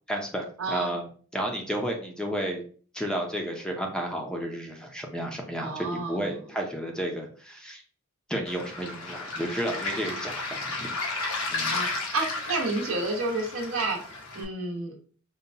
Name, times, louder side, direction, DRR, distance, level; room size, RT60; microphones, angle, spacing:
voice 1, 0.1-2.6 2.9-7.8 8.3-10.9 11.5-11.9, right 1 dB, 5° left, 2 dB, 0.5 m, -32 dB
voice 2, 0.6-0.9 5.6-6.3 11.4-14.0 14.3-14.9, right 2 dB, 75° right, 0 dB, 1.0 m, -30 dB
Waves surf, 8.5-14.4, left 3 dB, 85° left, 0.9 m, -33 dB
5.3 x 2.1 x 2.7 m, 0.43 s
head